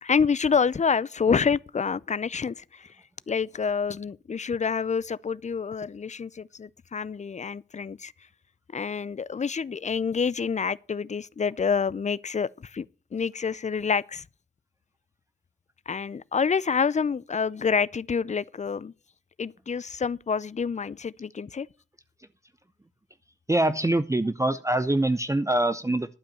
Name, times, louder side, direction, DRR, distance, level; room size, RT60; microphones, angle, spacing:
voice 1, 0.0-2.9 3.3-8.1 8.7-12.9 13.1-14.3 15.9-18.9 19.4-21.7, left 6 dB, 40° left, 0.4 m, -27 dB
voice 2, 23.5-26.1, right 1 dB, 15° right, 0.5 m, -24 dB
12.0 x 5.4 x 8.4 m
wide cardioid pair, 95°, 19 cm